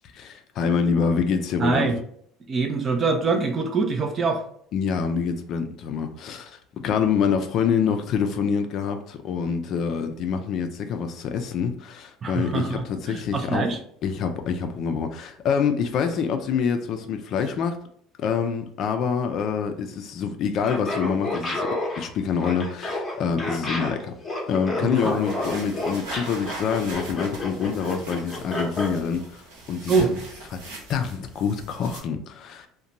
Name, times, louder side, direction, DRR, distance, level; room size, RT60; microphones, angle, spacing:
voice 1, 0.1-1.9 4.7-13.7 14.0-17.8 18.2-21.7 22.0-24.1 24.5-29.4 29.7-30.2 30.5-30.6 30.9-32.7, left 6 dB, 45° left, 7 dB, 0.3 m, -26 dB
voice 2, 1.6-2.0 2.5-4.4 12.2-13.8 24.8-25.2 29.9-30.2, right 4 dB, 25° right, 6 dB, 0.4 m, -24 dB
Laughter, 20.6-28.9, left 2 dB, 15° left, 0.7 m, -30 dB
sound 1, 25.0-32.0, right 2 dB, 85° right, 0.9 m, -40 dB
2.6 x 2.1 x 2.8 m, 0.62 s
cardioid pair, 145°, 0 cm